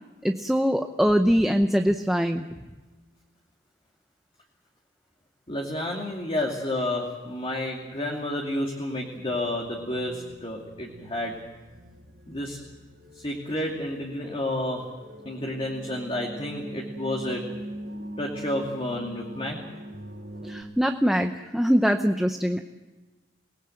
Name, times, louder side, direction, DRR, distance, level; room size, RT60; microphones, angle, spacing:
voice 1, 0.2-2.5 20.4-22.6, equal, ahead, 5 dB, 0.7 m, -23 dB
voice 2, 5.5-11.4 12.3-12.6 13.1-14.9 15.2-17.4 18.2-19.6, left 1 dB, 30° left, 0 dB, 2.5 m, -30 dB
sound 1, 9.2-20.6, equal, 65° right, 2.7 m, -42 dB
27.5 x 19.0 x 7.8 m, 1.2 s
head